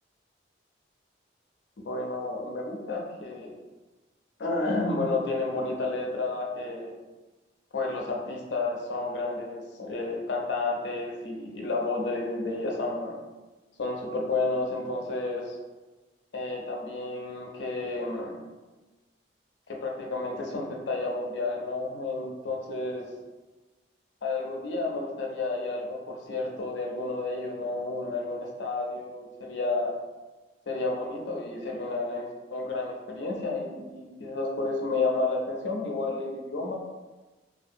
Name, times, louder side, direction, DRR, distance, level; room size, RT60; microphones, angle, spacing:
voice 1, 1.8-3.5 4.4-6.9 7.7-13.2 13.8-15.6 16.3-18.4 19.7-23.1 24.2-29.9 30.7-36.8, left 3 dB, 75° left, 0 dB, 0.5 m, -31 dB
2.6 x 2.3 x 2.5 m, 1.2 s
head